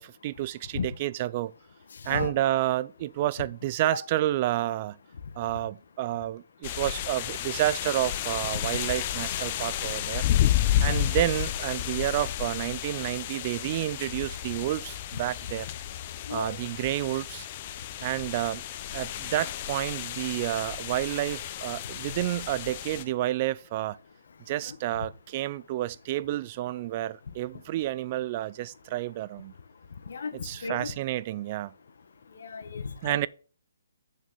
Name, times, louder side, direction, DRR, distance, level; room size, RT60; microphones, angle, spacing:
voice 1, 0.0-1.5 2.0-5.0 5.4-10.2 10.8-15.7 16.3-17.5 18.0-18.6 18.9-24.0 24.5-29.5 30.4-31.7 33.0-33.3, right 15 dB, 35° right, 0.4 m, -30 dB
voice 2, 2.0-2.3 3.9-4.0 10.8-11.1 16.3-16.6 24.6-24.8 30.1-30.9 32.3-33.2, left 5 dB, 70° left, 1.4 m, -34 dB
sound 1, 6.6-23.0, left 12 dB, 35° left, 0.6 m, -31 dB
6.5 x 6.3 x 5.3 m
hypercardioid pair, 155°, 0 cm